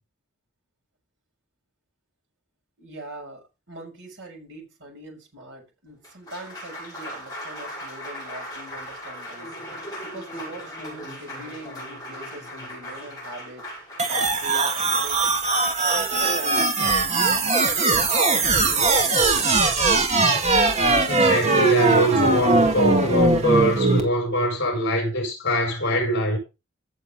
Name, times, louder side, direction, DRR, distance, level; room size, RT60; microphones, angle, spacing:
voice 1, 2.8-9.5 10.0-13.7 14.1-15.3 15.9-19.7 23.7-23.8, right 1 dB, 60° right, 6.5 m, -41 dB
Applause, 5.9-18.1, equal, 20° left, 6.6 m, -39 dB
sound 1, 14.0-24.0, right 3 dB, 35° right, 1.9 m, -20 dB
voice 2, 21.0-26.4, equal, 55° left, 5.6 m, -23 dB
15.5 x 6.9 x 3.7 m
head